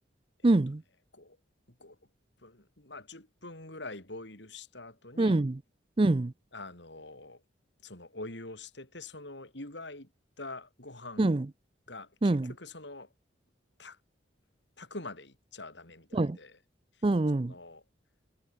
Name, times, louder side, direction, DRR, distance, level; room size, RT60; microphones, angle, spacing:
voice 1, 0.4-0.8 5.2-5.6 6.0-6.3 11.2-11.5 12.2-12.5 16.1-16.4 17.0-17.5, right 2 dB, 30° right, 0.5 m, -25 dB
voice 2, 2.4-5.4 6.5-7.4 7.8-10.1 10.4-11.4 11.9-13.1 13.8-14.0 14.8-16.6 16.9-17.0 17.5-17.8, left 2 dB, 65° left, 5.3 m, -45 dB
head